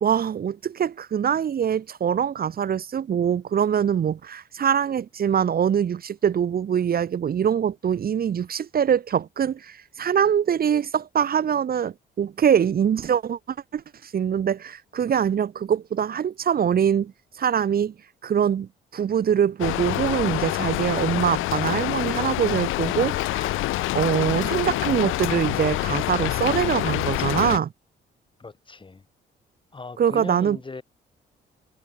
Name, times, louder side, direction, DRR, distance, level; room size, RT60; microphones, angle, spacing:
voice 1, 0.0-17.1 17.4-17.9 18.2-23.6 23.9-27.7 30.0-30.6, right 8 dB, 50° right, 1.1 m, -23 dB
Rain, 19.6-27.6, left 17 dB, 90° left, 0.8 m, -26 dB
voice 2, 28.4-29.0 29.7-30.8, left 3 dB, 25° left, 2.8 m, -38 dB
cardioid pair, 90°, 20 cm